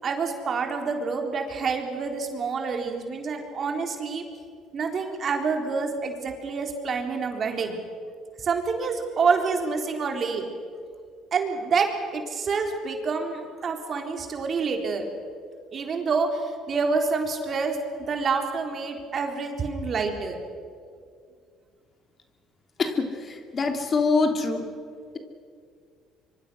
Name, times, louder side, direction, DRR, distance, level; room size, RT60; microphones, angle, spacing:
voice 1, 0.0-4.2 4.7-7.8 8.4-10.5 11.3-15.1 15.7-17.8 18.1-20.4, right 4 dB, 45° right, 3 dB, 3.9 m, -27 dB
voice 2, 22.8-24.6, left 4 dB, 40° left, 5 dB, 3.1 m, -24 dB
25.0 x 24.0 x 6.4 m, 2.2 s
supercardioid pair, 70°, 0 cm